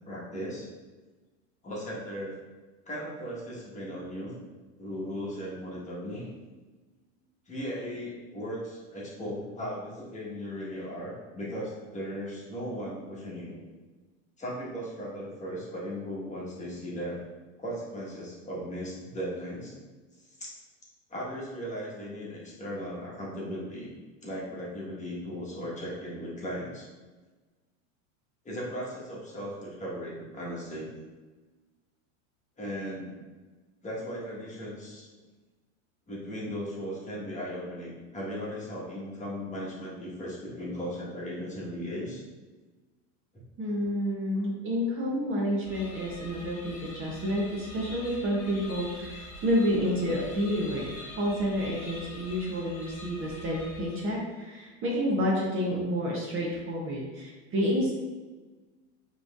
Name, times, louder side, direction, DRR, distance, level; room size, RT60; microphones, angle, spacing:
voice 1, 0.0-0.7 1.6-2.4 2.9-4.3 4.8-6.3 7.5-13.6 14.4-17.2 17.6-19.8 20.4-20.6 21.1-23.9 24.2-26.9 28.4-30.9 32.6-33.1 33.8-35.1 36.1-42.2, equal, 20° left, -6 dB, 1.4 m, -37 dB
voice 2, 43.6-57.9, equal, 35° right, -3 dB, 0.9 m, -29 dB
sound 1, 45.6-54.3, left 2 dB, 45° left, 1.1 m, -44 dB
4.9 x 3.2 x 2.4 m, 1.3 s
supercardioid pair, 110°, 37 cm